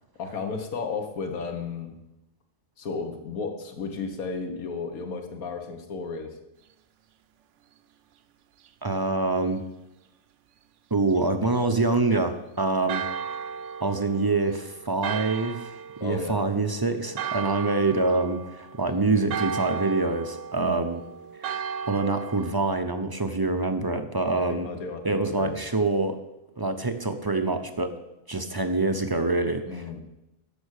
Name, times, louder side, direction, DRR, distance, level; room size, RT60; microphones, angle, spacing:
voice 1, 0.2-1.9 2.8-6.4 16.0-16.4 20.6-21.0 24.2-25.6 29.6-30.0, left 4 dB, 90° left, 5 dB, 1.7 m, -34 dB
voice 2, 8.8-9.6 10.9-13.0 13.8-15.7 16.0-21.0 21.4-21.5 21.9-24.7 25.0-26.2 26.6-27.9 28.3-30.0, right 3 dB, 30° right, 7 dB, 0.4 m, -25 dB
Church bell, 12.9-22.5, right 7 dB, 65° right, 0.9 m, -35 dB
10.5 x 7.2 x 6.5 m, 0.92 s
omnidirectional pair, 1.5 m